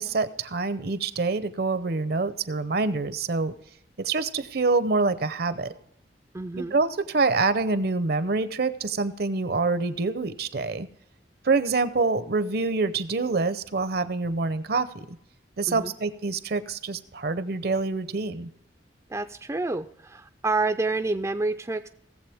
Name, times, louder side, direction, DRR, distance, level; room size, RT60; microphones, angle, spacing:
voice 1, 0.0-3.5 4.0-5.7 6.5-10.9 11.4-15.2 15.6-18.5, right 3 dB, 60° right, 14 dB, 0.7 m, -26 dB
voice 2, 6.3-6.8 15.7-15.9 19.1-21.9, right 3 dB, 15° right, 9 dB, 0.4 m, -28 dB
17.5 x 7.5 x 3.5 m, 0.78 s
head